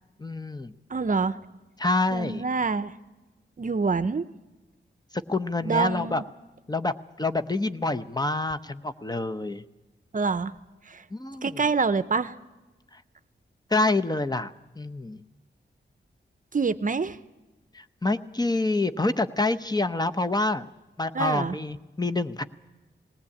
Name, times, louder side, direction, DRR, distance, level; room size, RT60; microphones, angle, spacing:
voice 1, 0.2-0.7 1.8-2.4 5.1-6.2 6.7-9.6 11.1-11.6 12.9-13.0 13.7-15.2 17.7-20.6 21.0-22.4, left 2 dB, 20° left, 10 dB, 0.8 m, -27 dB
voice 2, 0.9-1.4 2.1-2.9 3.6-4.2 5.6-6.2 10.1-10.5 10.9-11.0 11.4-12.3 16.5-17.2 21.1-21.6, right 4 dB, 45° right, 13 dB, 0.7 m, -26 dB
19.0 x 18.0 x 8.5 m, 1.1 s
wide cardioid pair, 100°, 19 cm